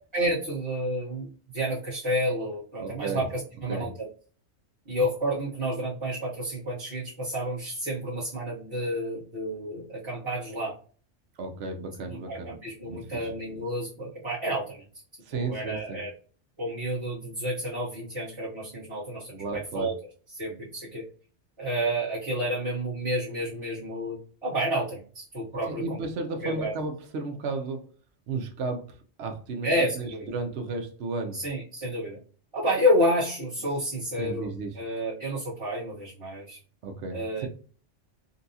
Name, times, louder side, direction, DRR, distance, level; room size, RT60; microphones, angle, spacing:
voice 1, 0.1-4.1 4.9-10.7 12.1-14.8 15.3-16.1 16.6-19.9 20.3-21.1 21.6-26.0 26.4-26.7 29.6-30.3 31.3-32.2 32.5-34.5 34.7-36.6 37.1-37.5, equal, 25° right, -10 dB, 1.1 m, -30 dB
voice 2, 2.8-3.2 3.7-3.9 11.4-12.5 12.9-13.3 15.2-16.0 19.4-19.9 25.7-27.9 28.3-29.7 30.0-31.4 34.2-34.8 36.8-37.5, right 3 dB, 70° right, 4 dB, 0.9 m, -34 dB
3.9 x 2.3 x 2.6 m, 0.41 s
omnidirectional pair, 1.2 m